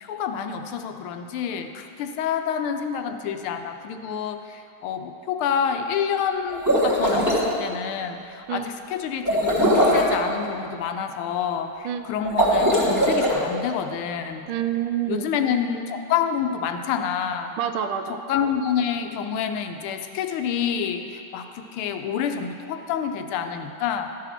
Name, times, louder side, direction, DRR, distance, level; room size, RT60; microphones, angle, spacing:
voice 1, 0.0-14.5 15.1-17.6 18.1-24.2, left 7 dB, 80° left, 6 dB, 1.4 m, -28 dB
sound 1, 6.5-7.4 9.2-10.1 12.2-13.3, equal, 10° right, 1.4 m, -20 dB
voice 2, 14.5-15.3 17.6-18.2, right 9 dB, 80° right, 7 dB, 1.4 m, -27 dB
12.5 x 5.0 x 5.7 m, 2.6 s
omnidirectional pair, 2.4 m